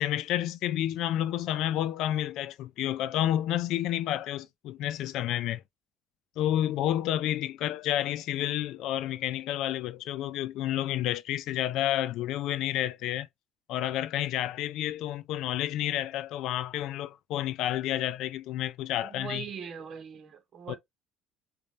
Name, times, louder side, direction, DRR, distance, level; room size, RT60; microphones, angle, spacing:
voice 1, 0.0-5.6 6.4-13.3 13.7-19.4 20.7-20.8, left 12 dB, 70° left, 0.4 m, -30 dB
voice 2, 19.0-20.8, right 6 dB, 45° right, 1.7 m, -41 dB
5.3 x 2.7 x 3.2 m
supercardioid pair, 95°, 0 cm